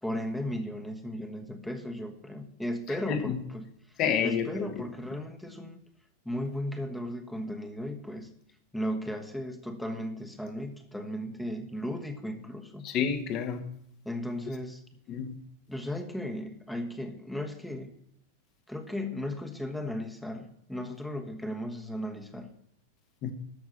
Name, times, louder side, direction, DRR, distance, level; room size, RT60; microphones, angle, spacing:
voice 1, 0.0-5.8 6.2-8.3 8.7-12.9 14.0-14.8 15.7-17.9 18.7-22.5, left 1 dB, 5° left, 1.3 m, -36 dB
voice 2, 3.1-3.4 4.0-4.7 12.8-13.6 15.1-15.3 23.2-23.3, left 7 dB, 35° left, 1.6 m, -29 dB
13.5 x 6.2 x 7.3 m
figure-of-eight pair, 90°, 0 cm